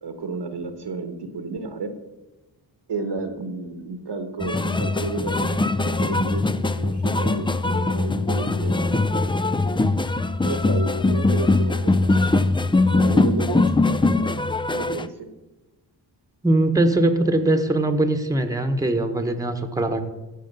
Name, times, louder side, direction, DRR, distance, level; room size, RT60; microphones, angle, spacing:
voice 1, 0.0-2.0 2.9-9.2 10.4-12.4 12.9-14.4 14.7-15.3, right 3 dB, 70° right, 8 dB, 1.3 m, -32 dB
sound 1, 4.4-15.1, left 2 dB, 10° left, 0.4 m, -21 dB
voice 2, 16.4-20.0, right 2 dB, 10° right, 6 dB, 1.1 m, -21 dB
14.5 x 5.2 x 5.4 m, 1.1 s
cardioid pair, 65°, 44 cm